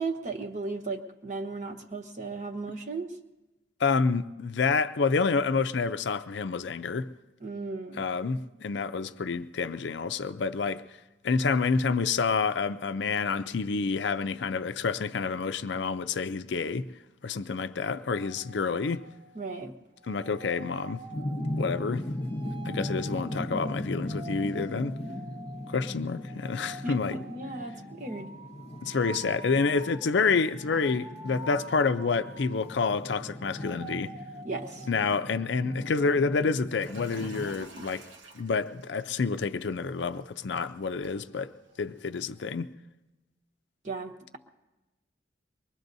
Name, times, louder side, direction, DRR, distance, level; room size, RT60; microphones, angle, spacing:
voice 1, 0.0-3.1 7.4-8.0 19.3-19.7 26.8-28.3 34.4-34.9 43.8-44.4, right 3 dB, 40° right, 1.1 m, -35 dB
voice 2, 3.8-7.1 7.9-10.8 11.2-16.9 17.2-19.0 20.1-21.0 21.5-22.1 22.7-24.9 25.7-27.2 28.8-34.1 34.9-38.0 38.4-41.5 41.8-42.7, left 4 dB, 70° left, 0.5 m, -28 dB
sound 1, 18.1-19.6 20.0-33.0 33.3-36.3, right 2 dB, 25° right, 0.4 m, -47 dB
sound 2, 21.1-37.5, left 1 dB, 35° left, 0.7 m, -38 dB
sound 3, 36.8-42.4, right 2 dB, 90° right, 1.1 m, -51 dB
23.5 x 21.5 x 2.7 m
head